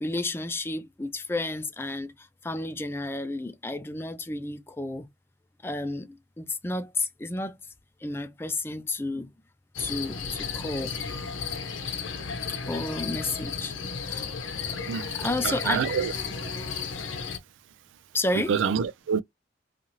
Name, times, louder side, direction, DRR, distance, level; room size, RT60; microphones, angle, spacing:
voice 1, 0.0-5.1 5.6-7.6 8.0-9.3 9.8-11.0 12.7-13.7 14.0-14.3 14.7-14.8 15.1-15.9 18.1-18.5, left 2 dB, 10° left, 0.3 m, -31 dB
sound 1, 9.7-17.4, left 5 dB, 85° left, 0.7 m, -34 dB
voice 2, 15.4-16.1 16.4-16.5 18.3-19.2, right 6 dB, 80° right, 0.3 m, -27 dB
2.6 x 2.5 x 2.8 m
head